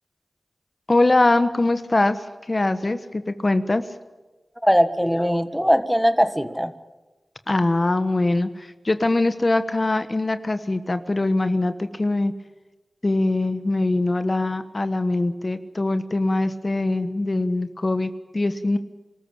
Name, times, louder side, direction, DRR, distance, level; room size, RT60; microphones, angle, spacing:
voice 1, 0.9-3.9 7.5-12.3 13.0-18.8, left 2 dB, 40° left, 11 dB, 1.3 m, -22 dB
voice 2, 4.6-6.7, equal, ahead, 12 dB, 1.4 m, -20 dB
25.0 x 14.0 x 8.8 m, 1.2 s
cardioid pair, 40°, 0 cm